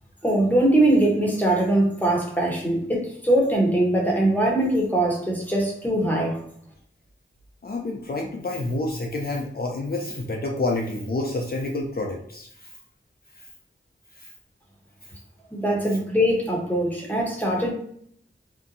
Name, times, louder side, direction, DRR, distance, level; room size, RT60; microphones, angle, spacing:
voice 1, 0.2-6.4 15.5-17.7, right 1 dB, 10° left, -2 dB, 0.9 m, -22 dB
voice 2, 7.6-12.8 13.3-13.5 14.1-14.3 15.0-15.1, left 2 dB, 50° left, 0 dB, 0.5 m, -29 dB
2.6 x 2.1 x 2.5 m, 0.65 s
cardioid pair, 40°, 21 cm